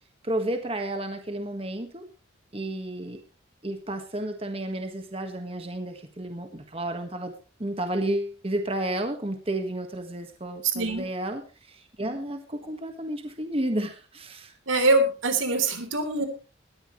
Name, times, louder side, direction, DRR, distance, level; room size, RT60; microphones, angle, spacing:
voice 1, 0.2-2.0 2.5-3.2 3.6-7.3 7.6-14.5, right 1 dB, 30° right, 6 dB, 1.7 m, -32 dB
voice 2, 10.7-11.0 14.7-16.3, right 2 dB, 85° right, 7 dB, 3.7 m, -23 dB
19.5 x 13.5 x 3.2 m, 0.34 s
head